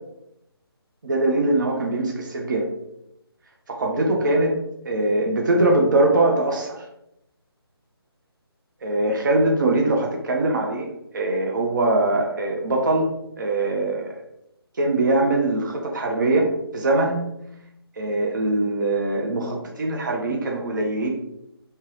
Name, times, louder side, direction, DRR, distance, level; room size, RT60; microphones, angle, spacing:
voice 1, 1.0-2.7 3.7-4.6 4.8-6.8 8.8-13.1 13.4-14.2 14.8-16.5 16.7-17.3 18.0-21.1, right 2 dB, 50° right, 1 dB, 0.6 m, -22 dB
3.3 x 2.8 x 3.2 m, 0.83 s
figure-of-eight pair, 150°, 13 cm